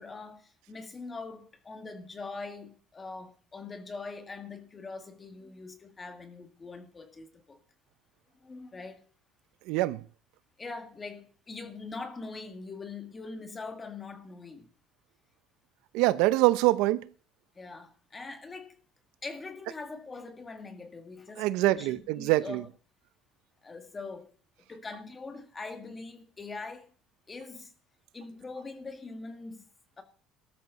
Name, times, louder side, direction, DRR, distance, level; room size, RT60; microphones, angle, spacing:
voice 1, 0.0-7.6 8.4-9.1 10.6-14.7 17.6-18.8 19.2-22.7 23.6-24.3 24.7-26.9 27.3-27.7 28.1-29.7 30.0-30.1, left 3 dB, 15° left, 2.2 m, -42 dB
voice 2, 9.7-10.0 15.9-17.1 21.4-22.6, right 18 dB, 80° right, 0.7 m, -24 dB
18.5 x 13.0 x 4.2 m
cardioid pair, 170°, 0 cm